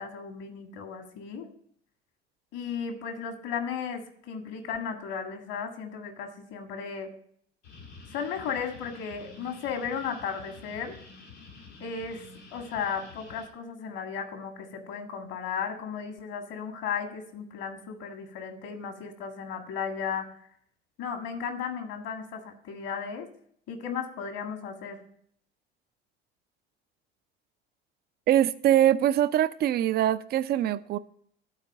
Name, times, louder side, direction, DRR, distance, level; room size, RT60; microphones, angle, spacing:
voice 1, 0.0-1.5 2.5-7.1 8.1-10.9 11.8-12.2 12.5-20.3 21.0-23.3 23.7-25.0, left 6 dB, 50° left, 6 dB, 1.8 m, -35 dB
sound 1, 7.6-13.5, left 4 dB, 75° left, 2.2 m, -49 dB
voice 2, 28.3-31.0, right 11 dB, 30° right, 15 dB, 0.4 m, -23 dB
11.5 x 4.5 x 5.4 m, 0.64 s
figure-of-eight pair, 65°, 32 cm